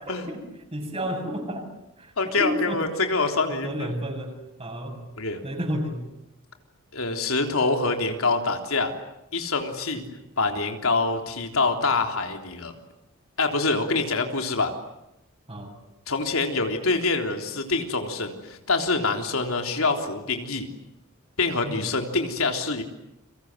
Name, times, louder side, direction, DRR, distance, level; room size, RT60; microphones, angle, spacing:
voice 1, 0.1-0.4 0.7-1.7 2.0-2.8 3.5-4.3 4.6-5.0 5.4-6.0 9.9-10.0 15.5-15.7 21.6-21.9, equal, 30° right, 3 dB, 7.6 m, -31 dB
voice 2, 2.2-3.9 5.2-5.4 6.9-8.9 9.3-10.0 10.4-12.7 13.4-14.7 16.1-20.7 21.4-22.8, left 3 dB, 80° left, 4 dB, 3.5 m, -25 dB
30.0 x 24.5 x 8.0 m, 0.88 s
head